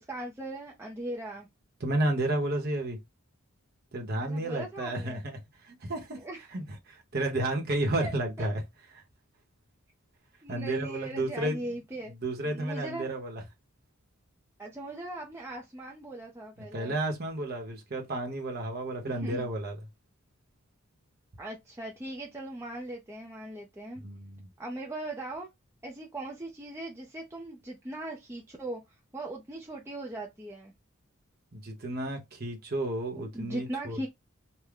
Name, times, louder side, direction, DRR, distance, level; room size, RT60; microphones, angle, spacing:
voice 1, 0.0-1.5 4.2-5.2 6.2-6.4 8.0-8.1 8.4-8.5 10.4-12.1 12.4-13.1 14.6-17.0 19.0-19.5 21.4-24.0 24.6-25.5 25.8-30.7 33.2-34.1, right 1 dB, 10° right, 0.5 m, -39 dB
voice 2, 1.8-3.0 3.9-5.4 5.6-6.2 6.5-8.6 10.5-11.6 12.2-13.4 16.6-19.8 24.0-24.5 31.5-34.1, right 1 dB, 45° right, 0.9 m, -32 dB
3.5 x 2.1 x 3.6 m
head